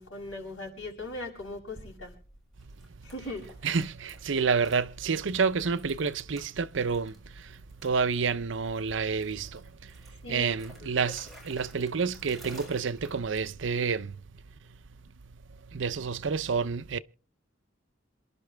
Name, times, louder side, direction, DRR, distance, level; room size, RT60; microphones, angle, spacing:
voice 1, 0.0-2.1 3.0-3.4 10.2-10.5 10.8-10.9, left 2 dB, 80° left, 7.2 m, -39 dB
sound 1, 1.7-13.8, equal, ahead, 6.7 m, -54 dB
voice 2, 3.6-7.1 7.8-9.6 10.3-14.1 15.7-17.0, right 5 dB, 70° right, 0.6 m, -29 dB
27.5 x 11.5 x 3.4 m
head